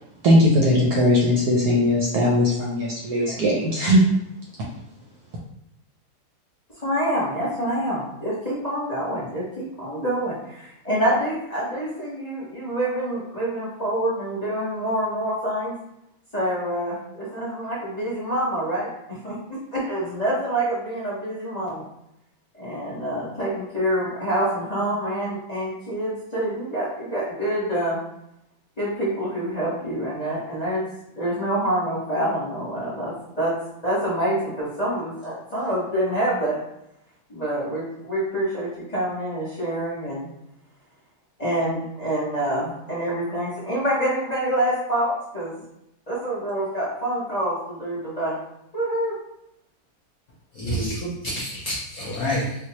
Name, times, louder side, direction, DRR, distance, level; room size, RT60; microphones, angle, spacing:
voice 1, 0.2-4.0, left 1 dB, 65° right, -3 dB, 1.0 m, -19 dB
voice 2, 6.8-15.7 16.3-18.9 19.2-21.8 22.6-28.0 28.8-30.9 31.2-33.5 33.8-36.6 37.3-40.3 41.4-45.5 46.1-48.4 48.7-49.1, right 1 dB, 25° left, -8 dB, 0.9 m, -26 dB
voice 3, 50.5-52.6, equal, 65° left, -5 dB, 0.9 m, -28 dB
3.9 x 2.4 x 2.9 m, 0.80 s
omnidirectional pair, 2.2 m